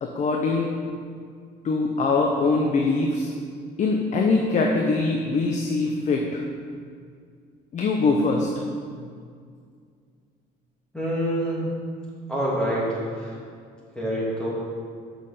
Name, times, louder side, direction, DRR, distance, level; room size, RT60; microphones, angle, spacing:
voice 1, 0.0-0.7 1.6-3.3 3.8-6.4 7.7-8.5, left 3 dB, 45° left, 1 dB, 0.9 m, -23 dB
voice 2, 10.9-11.6 12.3-13.3 13.9-14.5, equal, 5° left, -7 dB, 2.7 m, -26 dB
7.5 x 6.4 x 6.7 m, 2.2 s
cardioid pair, 110°, 17 cm